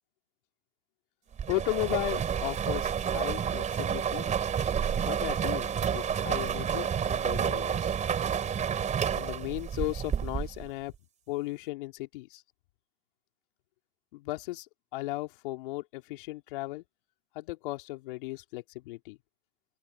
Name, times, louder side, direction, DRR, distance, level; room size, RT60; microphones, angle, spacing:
sound 1, 1.4-10.7, right 8 dB, 25° right, 3.6 m, -30 dB
voice 1, 1.5-4.3 5.0-7.9 9.1-10.9 11.3-12.4 14.1-14.7 14.9-16.8 17.3-19.2, left 20 dB, 60° left, 3.1 m, -36 dB
hypercardioid pair, 100°, 30 cm